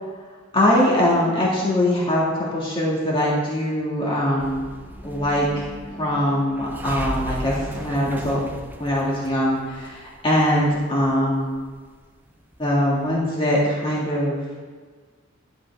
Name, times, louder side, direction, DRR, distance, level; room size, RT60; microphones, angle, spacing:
voice 1, 0.5-4.6 5.0-8.4 8.8-11.6 12.6-14.4, left 1 dB, 25° left, -6 dB, 2.0 m, -22 dB
sound 1, 4.4-13.2, right 1 dB, 10° right, 0.6 m, -36 dB
12.5 x 7.7 x 3.5 m, 1.5 s
head